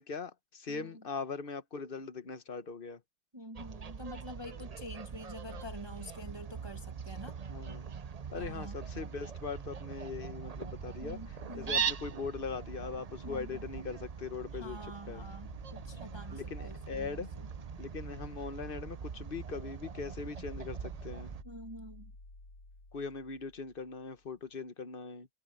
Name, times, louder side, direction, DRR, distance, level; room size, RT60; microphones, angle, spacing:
voice 1, 0.0-3.0 7.5-7.8 8.3-14.8 15.1-15.3 16.3-17.3 17.8-21.4 22.9-25.3, left 5 dB, 40° left, 1.1 m, -40 dB
voice 2, 0.7-1.0 3.3-7.4 8.4-8.8 11.0-11.9 13.2-13.6 14.5-17.5 21.4-22.1, equal, 15° right, 1.7 m, -47 dB
Fowl, 3.5-21.4, right 6 dB, 45° right, 0.5 m, -41 dB
sound 1, 15.1-24.3, left 2 dB, 80° left, 5.8 m, -55 dB
omnidirectional pair, 1.6 m